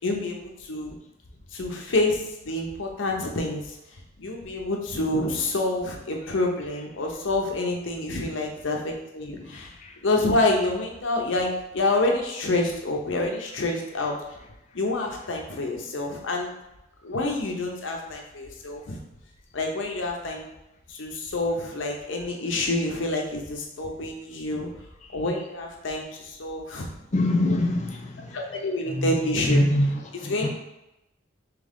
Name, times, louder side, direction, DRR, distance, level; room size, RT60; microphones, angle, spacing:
voice 1, 0.0-1.0 1.5-3.6 4.2-9.7 10.0-14.1 14.7-16.5 17.0-19.0 19.5-20.5 20.9-24.7 25.1-26.9 28.3-29.7 30.3-30.5, left 2 dB, 75° left, 0.7 m, -27 dB
voice 2, 27.1-28.3 28.9-29.1 29.5-29.9 30.2-30.5, left 1 dB, 35° left, 0.5 m, -23 dB
3.5 x 3.1 x 3.7 m
head